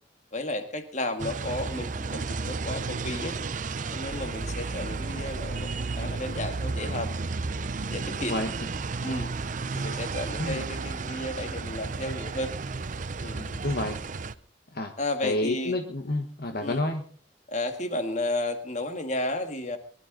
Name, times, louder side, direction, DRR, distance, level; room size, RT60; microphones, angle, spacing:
voice 1, 0.3-3.4 3.9-7.1 7.9-8.4 9.0-9.3 9.7-12.5 13.2-13.4 15.0-15.8 16.6-16.8 17.5-19.8, left 1 dB, 40° left, 7 dB, 1.8 m, -33 dB
sound 1, 1.2-14.3, right 4 dB, 45° right, 0.6 m, -33 dB
voice 2, 13.3-14.0 14.7-14.9 15.2-17.0, left 2 dB, 55° left, 5 dB, 1.3 m, -29 dB
22.5 x 12.0 x 3.9 m, 0.43 s
head